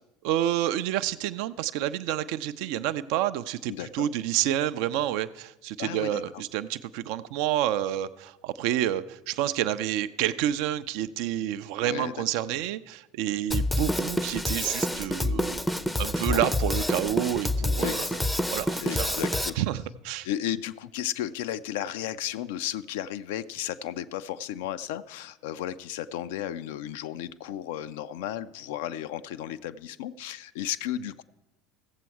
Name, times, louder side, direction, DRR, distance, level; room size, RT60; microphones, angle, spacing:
voice 1, 0.2-15.6 16.0-18.1 18.5-19.2 19.6-20.3, right 12 dB, 55° right, 12 dB, 0.4 m, -29 dB
voice 2, 3.7-4.1 5.8-6.2 11.8-12.3 16.3-16.5 17.8-18.2 18.8-19.6 20.2-31.2, left 11 dB, 60° left, 13 dB, 0.4 m, -34 dB
Drum kit, 13.5-19.5, left 1 dB, 5° left, 0.5 m, -28 dB
15.5 x 7.5 x 4.6 m, 0.96 s
figure-of-eight pair, 65°, 0 cm